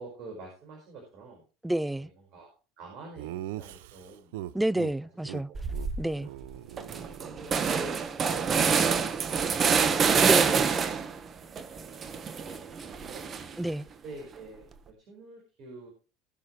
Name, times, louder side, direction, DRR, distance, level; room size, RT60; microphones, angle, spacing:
voice 1, 0.0-1.4 2.0-2.5 2.8-4.3 5.1-5.6 6.0-6.1 6.6-10.0 11.7-13.2 14.0-15.9, right 3 dB, 55° right, 5.0 m, -47 dB
voice 2, 1.6-2.1 4.5-5.5 6.0-6.3 10.2-10.7 13.6-13.8, right 1 dB, 5° right, 0.5 m, -29 dB
Laughter, 3.2-4.9 5.2-5.4 5.7-5.9 6.2-7.7, right 14 dB, 75° right, 0.6 m, -40 dB
sound 1, 5.5-6.0 6.4-6.5 6.8-11.2 11.6-13.7, right 6 dB, 35° right, 1.3 m, -26 dB
20.0 x 6.8 x 3.2 m
hypercardioid pair, 80°, 0 cm